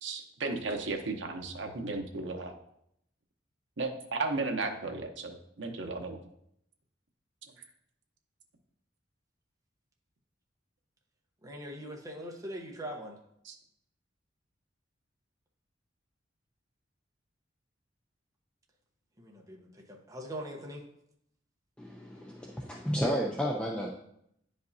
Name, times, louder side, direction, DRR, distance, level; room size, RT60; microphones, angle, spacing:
voice 1, 0.0-2.5 3.8-6.2 13.4-13.6, right 3 dB, 75° right, 3 dB, 0.9 m, -35 dB
voice 2, 11.4-13.2 19.2-20.8, equal, 20° right, 0 dB, 0.9 m, -42 dB
voice 3, 21.8-24.0, equal, 5° left, -3 dB, 0.6 m, -32 dB
9.8 x 5.2 x 2.7 m, 0.74 s
head